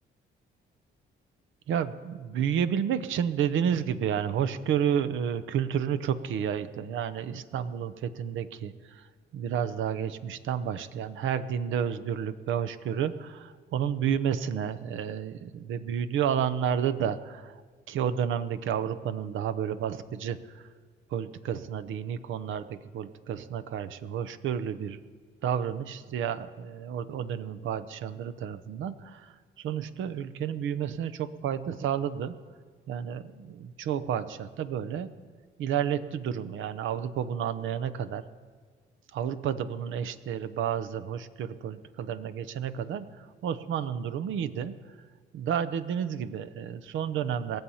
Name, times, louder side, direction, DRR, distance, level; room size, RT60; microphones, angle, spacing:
voice 1, 1.7-17.6 17.9-20.7 21.1-25.0 25.4-32.4 32.9-35.1 35.6-38.2 39.1-45.0 45.3-47.6, right 8 dB, 80° right, 11 dB, 0.8 m, -31 dB
21.5 x 7.3 x 5.6 m, 1.5 s
cardioid pair, 90°, 20 cm